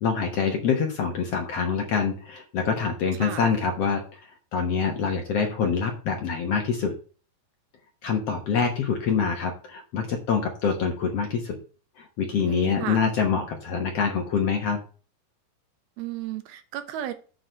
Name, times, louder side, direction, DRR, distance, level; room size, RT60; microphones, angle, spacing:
voice 1, 0.0-6.9 8.0-11.6 12.0-14.8, left 6 dB, 65° left, 3 dB, 1.6 m, -25 dB
voice 2, 3.2-3.6 12.4-13.1 16.0-17.1, right 12 dB, 90° right, 8 dB, 3.0 m, -34 dB
7.6 x 4.8 x 6.6 m, 0.38 s
omnidirectional pair, 4.3 m